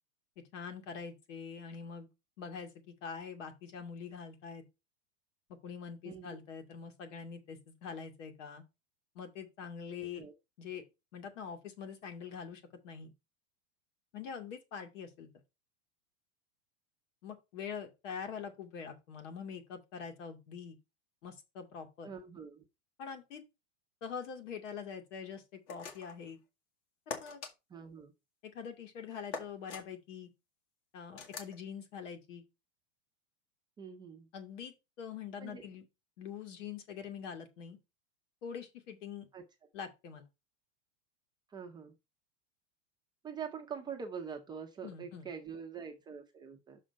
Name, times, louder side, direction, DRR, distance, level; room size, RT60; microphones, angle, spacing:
voice 1, 0.5-2.1 2.4-4.6 5.6-8.6 9.1-10.2 10.6-10.8 11.1-13.1 14.1-15.3 17.2-20.8 21.2-22.1 23.0-23.4 24.0-26.4 27.1-27.4 28.4-30.3 30.9-32.4 34.3-35.8 36.2-37.8 38.4-39.3 39.7-40.3 44.8-45.3, left 6 dB, 65° left, 2.5 m, -44 dB
voice 2, 6.0-6.4 10.1-10.3 22.0-22.6 27.7-28.1 33.8-34.3 35.4-35.6 39.3-39.4 41.5-41.9 43.2-46.8, right 6 dB, 10° right, 0.6 m, -44 dB
sound 1, 25.7-26.2 27.1-27.5 29.3-29.8 31.2-31.6, left 5 dB, 45° left, 2.1 m, -42 dB
6.4 x 4.9 x 5.3 m
supercardioid pair, 155°, 39 cm